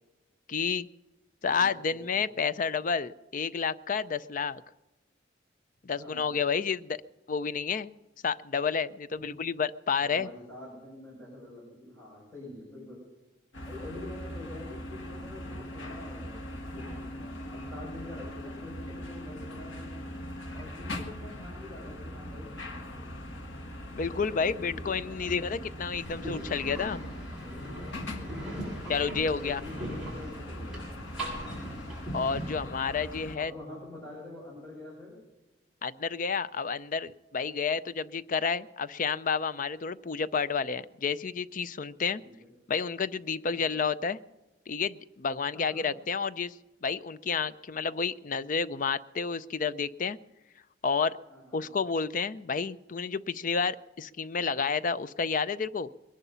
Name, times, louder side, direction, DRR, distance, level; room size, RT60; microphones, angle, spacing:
voice 1, 0.5-0.9 1.4-4.6 5.8-7.0 7.3-7.9 8.2-10.3 23.9-27.0 28.9-29.6 32.1-33.5 35.8-42.2 42.7-44.2 44.7-46.5 46.8-50.2 50.8-51.2 51.5-55.9, left 5 dB, 45° left, 16 dB, 0.5 m, -30 dB
voice 2, 1.5-2.3 6.0-6.3 9.2-9.3 10.0-13.0 13.6-19.9 20.5-22.5 22.9-23.1 24.3-25.6 27.0-28.7 29.4-30.8 31.3-31.6 33.4-35.2 42.2-42.5 43.5-43.8 45.4-45.9 51.3-51.7, left 2 dB, 10° left, -6 dB, 6.7 m, -46 dB
sound 1, 13.5-33.4, left 1 dB, 85° left, 1.8 m, -41 dB
sound 2, 25.9-32.6, right 1 dB, 5° right, 7.7 m, -40 dB
21.5 x 11.0 x 5.6 m, 1.1 s
head